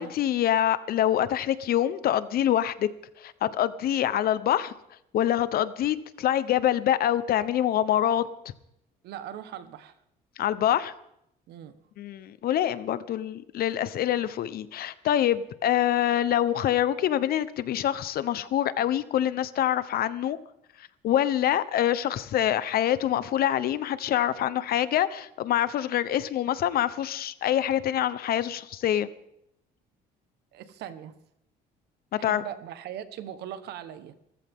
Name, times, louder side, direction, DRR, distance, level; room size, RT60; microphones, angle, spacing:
voice 1, 0.0-2.9 3.2-4.7 5.1-8.2 10.4-10.9 12.0-20.4 21.0-29.1 32.2-32.4, left 11 dB, 65° left, 14 dB, 1.0 m, -25 dB
voice 2, 9.0-9.9 11.5-11.7 30.5-31.1 32.2-34.1, right 10 dB, 75° right, 11 dB, 1.4 m, -40 dB
25.0 x 14.5 x 3.7 m, 0.79 s
cardioid pair, 110°, 17 cm